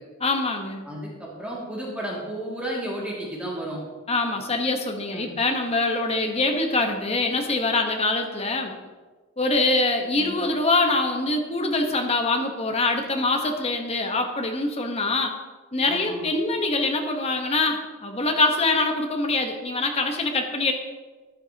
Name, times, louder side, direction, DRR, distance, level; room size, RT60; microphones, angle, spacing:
voice 1, 0.2-0.8 4.1-8.7 9.4-15.3 15.7-20.7, left 2 dB, 30° left, 3 dB, 1.1 m, -24 dB
voice 2, 0.8-3.8 5.1-5.3 10.2-10.4 15.9-16.2, right 1 dB, 5° right, -5 dB, 2.3 m, -33 dB
13.5 x 9.9 x 2.9 m, 1.3 s
head